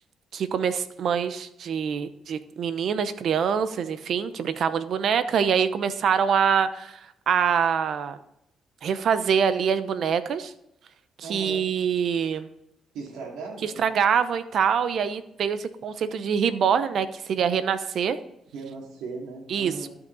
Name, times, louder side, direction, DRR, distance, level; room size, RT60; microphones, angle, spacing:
voice 1, 0.3-7.0 7.3-8.2 8.8-10.5 11.2-12.5 13.6-18.2 19.5-19.9, right 7 dB, 65° right, 12 dB, 0.8 m, -25 dB
voice 2, 11.2-11.7 12.9-13.8 18.5-19.9, right 4 dB, 90° right, -2 dB, 2.5 m, -37 dB
13.0 x 5.8 x 4.0 m, 0.80 s
cardioid pair, 90°, 0 cm